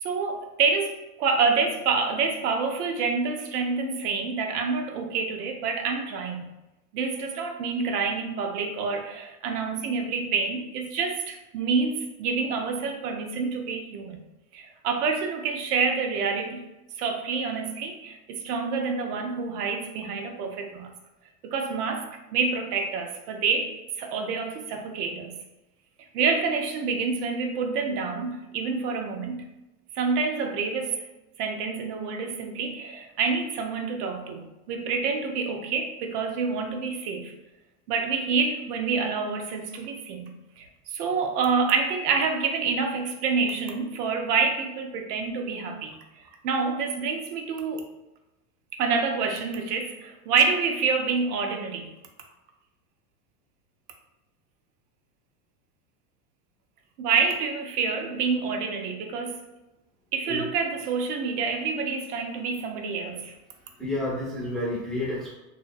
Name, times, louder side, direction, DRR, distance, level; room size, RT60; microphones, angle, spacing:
voice 1, 0.0-6.4 6.9-14.2 14.5-16.6 17.0-20.9 21.4-25.3 26.1-29.4 29.9-31.0 31.4-37.3 37.9-40.7 40.9-46.0 46.4-47.9 48.7-51.9 57.0-59.4 60.1-63.3, right 5 dB, 75° right, 4 dB, 0.6 m, -27 dB
voice 2, 63.8-65.3, left 1 dB, ahead, -7 dB, 0.3 m, -30 dB
2.6 x 2.2 x 2.5 m, 0.97 s
supercardioid pair, 120°, 48 cm